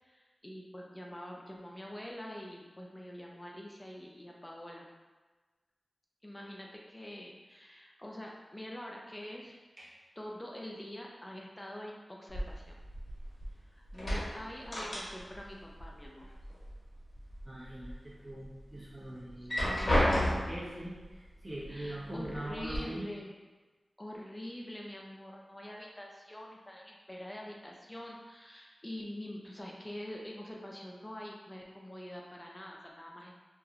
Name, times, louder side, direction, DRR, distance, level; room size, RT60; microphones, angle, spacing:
voice 1, 0.0-4.9 6.2-9.7 10.2-12.8 13.6-16.3 19.4-19.6 21.7-23.3 24.0-33.3, left 1 dB, 20° left, -1 dB, 0.4 m, -45 dB
sound 1, 12.3-13.6 13.9-15.5 15.7-16.7 17.2-17.9 18.4-18.5 19.3-20.7 21.6-21.7 22.2-22.8, equal, 45° left, 1.0 m, -32 dB
voice 2, 17.4-19.9 20.4-23.1, right 1 dB, 35° right, -8 dB, 0.9 m, -42 dB
2.8 x 2.3 x 2.5 m, 1.3 s
wide cardioid pair, 75°, 0 cm